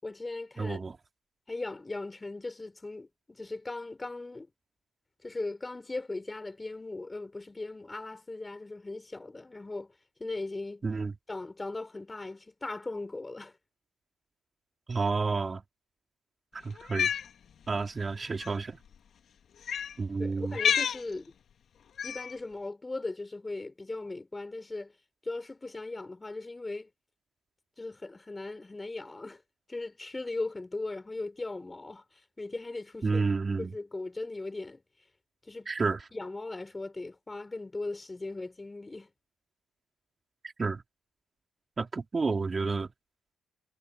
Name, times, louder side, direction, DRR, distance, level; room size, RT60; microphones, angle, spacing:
voice 1, 0.0-0.8 1.5-4.5 5.2-9.9 10.2-10.8 11.3-13.5 20.2-21.3 22.0-24.9 25.2-26.9 27.8-29.4 29.7-32.0 32.4-33.2 33.6-34.8 35.5-39.1, left 2 dB, 20° left, 5.9 m, -38 dB
voice 2, 0.6-1.0 10.8-11.1 14.9-15.6 16.5-17.1 17.7-18.8 20.0-20.6 33.0-33.7 35.7-36.0 40.6-40.8 41.8-42.9, right 4 dB, 30° right, 4.4 m, -30 dB
Cat, 16.8-17.3 18.3-18.5 19.6-19.9 20.5-21.0 22.0-22.3, left 8 dB, 60° left, 2.5 m, -28 dB
cardioid pair, 90°, 0 cm